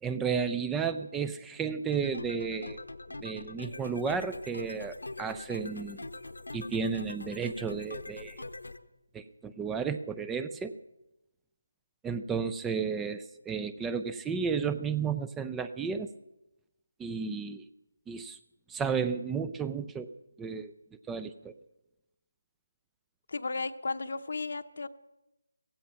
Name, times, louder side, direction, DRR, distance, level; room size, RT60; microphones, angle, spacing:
voice 1, 0.0-2.8 3.2-6.0 6.5-8.4 9.1-10.7 12.0-16.1 17.0-17.6 18.1-18.4 18.7-20.1 20.4-20.7 21.1-21.5, right 6 dB, 5° right, 12 dB, 0.4 m, -33 dB
sound 1, 1.9-8.8, left 2 dB, 80° left, 1.2 m, -43 dB
voice 2, 23.3-24.9, left 3 dB, 55° left, 11 dB, 0.9 m, -34 dB
16.0 x 15.5 x 5.8 m, 0.93 s
figure-of-eight pair, 155°, 0 cm